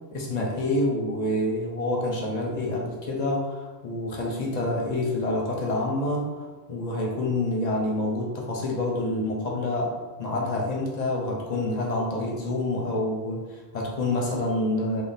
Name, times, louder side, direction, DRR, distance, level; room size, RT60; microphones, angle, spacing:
voice 1, 0.1-15.0, left 1 dB, 45° left, -2 dB, 0.6 m, -27 dB
3.6 x 2.0 x 4.0 m, 1.2 s
omnidirectional pair, 1.4 m